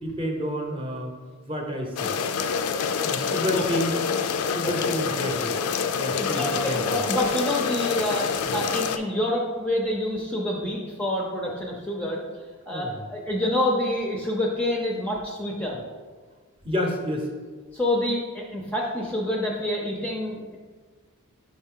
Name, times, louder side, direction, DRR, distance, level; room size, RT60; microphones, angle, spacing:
voice 1, 0.0-1.1 1.5-2.1 3.0-3.9 4.4-5.6 6.0-7.0 8.4-8.5 12.7-13.0 16.6-17.3, equal, 25° right, 1 dB, 0.8 m, -30 dB
sound 1, 2.0-9.0, left 6 dB, 80° left, 0.4 m, -27 dB
voice 2, 3.3-3.6 4.6-4.9 6.2-12.2 12.7-15.8 17.7-20.6, left 1 dB, 5° left, -2 dB, 0.5 m, -27 dB
5.3 x 5.1 x 3.7 m, 1.4 s
head